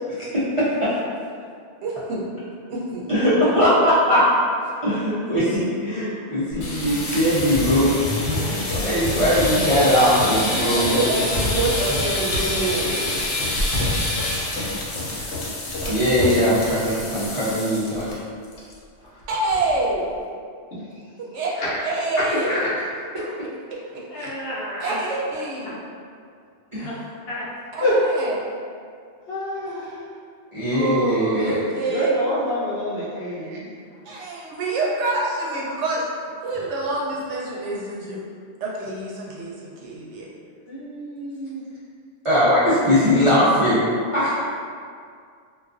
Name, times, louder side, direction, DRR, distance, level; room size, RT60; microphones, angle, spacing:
voice 1, 0.3-1.0 3.1-4.3 4.8-11.0 15.9-18.1 22.3-22.4 26.7-26.9 30.5-31.6 42.2-43.8 44.1-44.4, equal, 50° right, -12 dB, 0.4 m, -20 dB
voice 2, 1.8-2.4 2.7-3.4 8.5-8.6 10.5-13.1 15.8-16.4 19.3-20.1 21.2-21.5 21.8-22.6 23.7-23.8 24.1-24.3 24.8-25.7 27.7-28.4 30.7-32.6 33.4-33.6 34.0-36.0 36.4-38.2 38.6-40.3, right 2 dB, 85° right, -4 dB, 0.9 m, -27 dB
sound 1, 6.5-18.1 18.4-18.7 19.0-19.1 19.5-19.9, left 2 dB, 90° left, 0.9 m, -26 dB
voice 3, 24.1-24.9 26.8-26.9 27.3-27.4 27.8-28.0 29.3-30.0 31.9-33.7 40.7-41.6, left 1 dB, 60° left, -9 dB, 0.9 m, -28 dB
2.4 x 2.3 x 2.4 m, 2.2 s
omnidirectional pair, 1.2 m